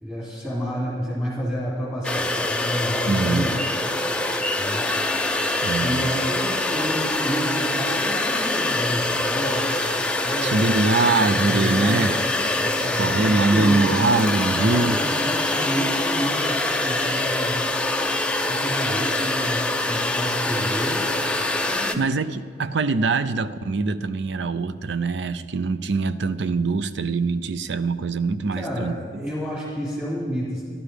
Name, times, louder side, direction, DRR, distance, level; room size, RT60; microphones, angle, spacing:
voice 1, 0.0-3.6 4.6-4.9 5.8-9.7 10.0-12.1 12.6-13.8 14.6-17.7 18.5-21.1 21.6-22.0 28.5-30.6, equal, 10° right, -7 dB, 4.0 m, -29 dB
sound 1, 2.0-21.9, left 2 dB, 5° left, 0.5 m, -24 dB
voice 2, 3.1-3.5 5.6-6.1 10.4-12.2 13.0-15.0 22.0-29.0, right 3 dB, 65° right, 13 dB, 0.5 m, -23 dB
13.0 x 12.0 x 5.0 m, 2.1 s
head